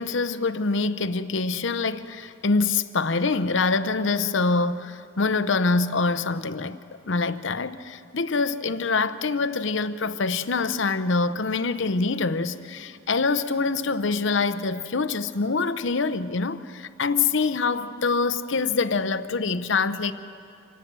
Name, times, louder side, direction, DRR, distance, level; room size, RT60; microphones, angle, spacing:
voice 1, 0.0-20.1, left 4 dB, 60° left, 0.7 m, -25 dB
26.0 x 18.0 x 7.6 m
head